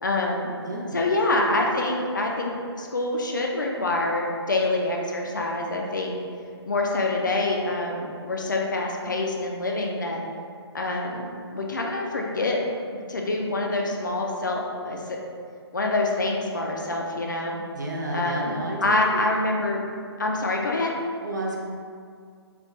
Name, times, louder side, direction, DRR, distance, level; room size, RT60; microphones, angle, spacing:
voice 1, 0.0-0.5 0.9-6.2 6.7-10.2 10.7-11.3 11.5-12.6 13.1-15.2 15.7-17.6 18.1-19.8 20.2-20.9, left 2 dB, 45° left, 0 dB, 0.4 m, -26 dB
voice 2, 0.6-0.9 17.7-19.2 21.2-21.6, right 1 dB, 45° right, -2 dB, 0.5 m, -31 dB
3.3 x 2.4 x 3.0 m, 2.2 s
hypercardioid pair, 180°, 14 cm